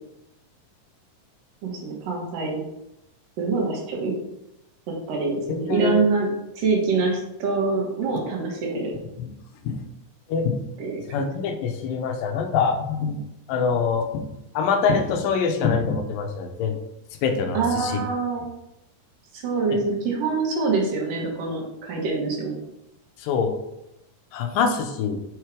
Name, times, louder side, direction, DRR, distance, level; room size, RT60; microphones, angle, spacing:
voice 1, 1.6-2.6 3.4-4.1 4.9-6.3 6.5-8.9 10.8-11.3 17.5-18.5 19.3-22.6, right 4 dB, 75° right, -1 dB, 3.1 m, -25 dB
voice 2, 5.7-6.0 9.2-9.3 9.7-9.9 10.3-10.6 11.1-13.2 13.5-14.2 14.5-16.8 17.2-17.9 19.7-19.8 23.2-23.5 24.3-25.2, left 5 dB, 90° left, 6 dB, 2.4 m, -24 dB
6.5 x 4.6 x 4.8 m, 0.87 s
omnidirectional pair, 4.0 m